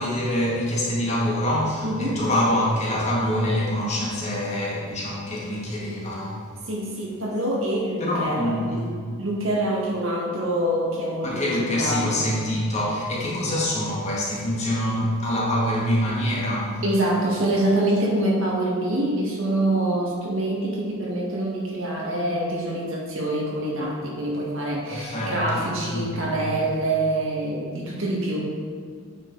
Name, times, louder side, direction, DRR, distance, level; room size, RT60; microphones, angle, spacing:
voice 1, 0.0-6.6 8.0-8.9 11.2-16.8 24.9-26.4, left 1 dB, 30° left, -5 dB, 1.8 m, -25 dB
voice 2, 1.8-2.2 6.7-8.6 9.2-12.3 13.3-13.4 16.8-28.4, right 1 dB, 60° right, -3 dB, 1.8 m, -25 dB
9.0 x 5.9 x 4.1 m, 2.1 s
head